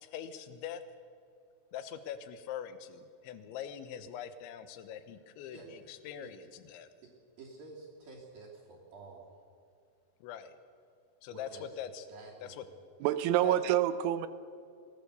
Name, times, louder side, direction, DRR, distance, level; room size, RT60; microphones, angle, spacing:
voice 1, 0.0-0.8 1.7-6.9 10.2-10.6 11.2-12.1 12.4-12.6 13.4-13.5, left 9 dB, 80° left, 11 dB, 3.4 m, -43 dB
voice 2, 7.4-9.3 11.3-11.7 12.1-12.7, right 3 dB, 50° right, -4 dB, 4.6 m, -50 dB
voice 3, 13.0-14.3, right 12 dB, 85° right, 13 dB, 3.3 m, -27 dB
24.0 x 18.0 x 6.9 m, 2.3 s
omnidirectional pair, 5.5 m